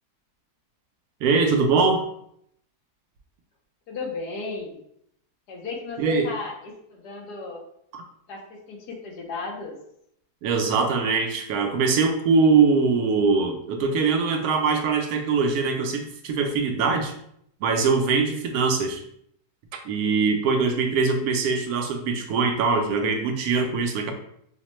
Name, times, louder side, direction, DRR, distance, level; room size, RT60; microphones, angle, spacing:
voice 1, 1.2-2.0 6.0-6.3 7.9-8.0 10.4-17.1 17.6-19.0 19.8-24.1, right 4 dB, 75° right, 4 dB, 1.0 m, -22 dB
voice 2, 3.9-4.8 5.5-7.6 8.3-9.8, left 3 dB, 80° left, 0 dB, 1.4 m, -35 dB
5.6 x 2.1 x 3.0 m, 0.71 s
omnidirectional pair, 1.7 m